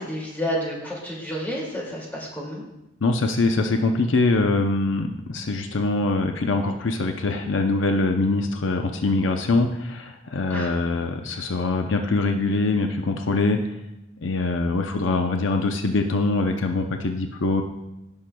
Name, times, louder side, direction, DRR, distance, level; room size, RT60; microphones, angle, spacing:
voice 1, 0.0-2.6 10.5-10.7, equal, 10° left, -4 dB, 2.3 m, -30 dB
voice 2, 3.0-13.7 14.2-17.6, left 3 dB, 70° left, 5 dB, 0.6 m, -23 dB
16.0 x 6.5 x 2.3 m, 0.90 s
head